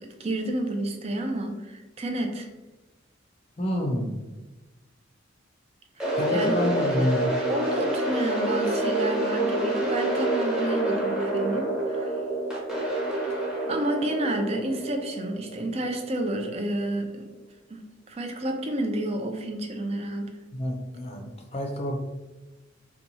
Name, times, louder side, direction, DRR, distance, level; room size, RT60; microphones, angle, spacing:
voice 1, 0.2-2.5 6.0-6.7 7.5-12.2 13.7-17.3 17.7-17.8 18.1-20.3, right 1 dB, 30° right, 4 dB, 0.4 m, -30 dB
voice 2, 3.6-4.2 6.2-7.3 20.5-22.0, equal, 30° left, 2 dB, 0.5 m, -28 dB
sound 1, 6.0-16.1, right 1 dB, 5° right, 0.7 m, -27 dB
2.8 x 2.3 x 4.0 m, 1.1 s
head